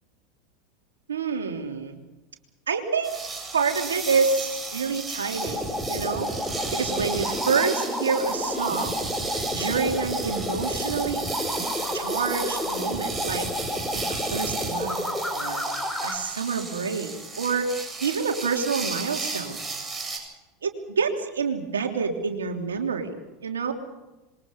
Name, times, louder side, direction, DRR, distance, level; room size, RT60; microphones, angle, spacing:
voice 1, 1.1-2.0 2.7-3.2 3.5-5.6 5.9-6.3 6.7-9.1 9.5-11.2 11.9-13.5 13.9-15.6 16.0-19.6 20.6-23.1 23.4-23.7, right 5 dB, 80° right, 3 dB, 3.2 m, -27 dB
sound 1, 3.0-20.2, right 3 dB, 15° right, 7.9 m, -34 dB
sound 2, 5.3-16.2, left 1 dB, 5° left, 5.8 m, -30 dB
26.5 x 23.0 x 5.5 m, 1.1 s
figure-of-eight pair, 80°, 0 cm